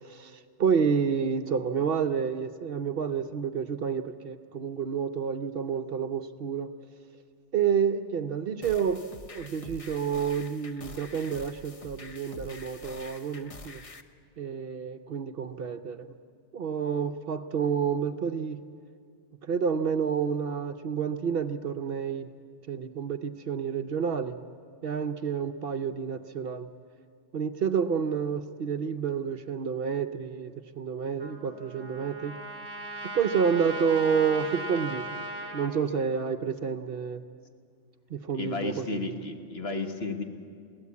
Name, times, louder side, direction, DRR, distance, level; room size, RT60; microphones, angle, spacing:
voice 1, 0.0-6.7 7.5-9.0 9.3-13.8 14.4-16.1 16.5-18.6 19.4-22.3 22.7-24.4 24.8-26.7 27.3-32.3 33.1-35.2 35.5-37.2 38.1-39.2, right 6 dB, 55° right, 9 dB, 0.8 m, -29 dB
sound 1, 8.6-14.0, left 2 dB, 35° left, 0.8 m, -46 dB
Trumpet, 31.2-35.7, right 1 dB, 40° right, 2.2 m, -38 dB
voice 2, 38.3-40.2, left 3 dB, 55° left, 5 dB, 1.5 m, -33 dB
22.0 x 16.5 x 8.3 m, 2.3 s
omnidirectional pair, 1.2 m